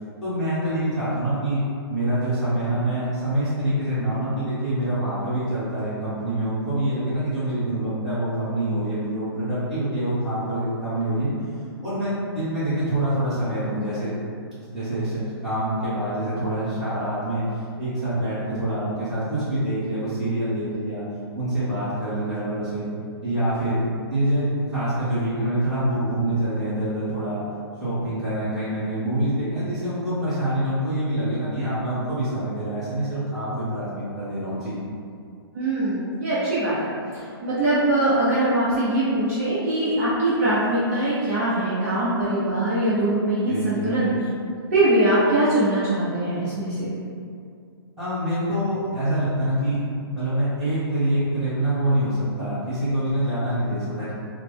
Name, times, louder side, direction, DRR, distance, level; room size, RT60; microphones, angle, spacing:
voice 1, 0.2-1.6 1.9-11.3 11.8-14.1 14.7-17.4 17.8-21.0 21.3-22.8 23.2-23.8 24.1-27.4 27.8-34.8 43.5-44.0 48.0-49.8 50.1-54.1, right 1 dB, ahead, -17 dB, 1.0 m, -25 dB
voice 2, 35.5-44.1 44.7-46.9, right 1 dB, 35° right, -10 dB, 0.6 m, -22 dB
3.1 x 2.0 x 3.4 m, 2.3 s
hypercardioid pair, 170°, 13 cm